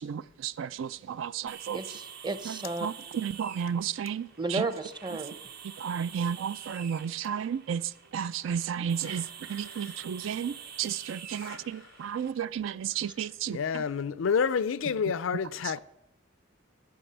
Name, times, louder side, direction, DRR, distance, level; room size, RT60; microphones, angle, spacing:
voice 1, 0.0-1.8 2.4-4.7 5.6-13.9 15.6-15.8, right 8 dB, 75° right, 0.3 m, -33 dB
sound 1, 1.5-12.3, right 7 dB, 55° right, 0.8 m, -47 dB
voice 2, 1.7-2.9 4.4-5.4, right 3 dB, 25° right, 0.7 m, -33 dB
voice 3, 13.5-15.8, left 6 dB, 85° left, 0.4 m, -28 dB
12.5 x 6.2 x 7.9 m
head